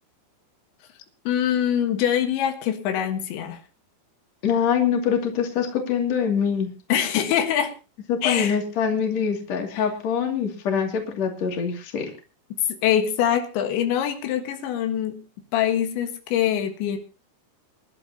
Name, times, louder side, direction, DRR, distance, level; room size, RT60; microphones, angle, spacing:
voice 1, 1.3-3.6 6.9-7.8 8.2-8.6 9.7-9.8 12.8-15.2 15.5-17.0, left 10 dB, 85° left, 6 dB, 3.8 m, -24 dB
voice 2, 4.4-6.7 8.1-12.1, left 7 dB, 45° left, 2 dB, 3.3 m, -24 dB
25.5 x 11.5 x 2.9 m, 0.32 s
omnidirectional pair, 5.0 m